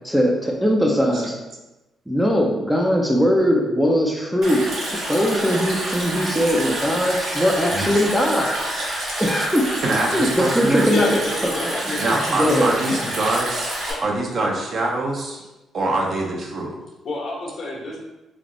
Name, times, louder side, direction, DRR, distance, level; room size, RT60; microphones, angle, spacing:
voice 1, 0.0-1.3 2.1-8.9 9.2-9.8 10.1-11.1 11.6-12.0 12.3-12.7 13.0-13.1, equal, 5° right, 0 dB, 0.6 m, -20 dB
Stream, 4.4-13.9, right 1 dB, 65° right, 1.3 m, -28 dB
voice 2, 9.8-10.9 12.0-15.4 15.7-16.8, right 2 dB, 50° right, -1 dB, 0.8 m, -24 dB
voice 3, 10.8-12.8 13.8-14.0 17.0-18.0, left 1 dB, 60° left, -3 dB, 1.2 m, -29 dB
3.3 x 2.4 x 3.9 m, 1.0 s
cardioid pair, 90°, 0 cm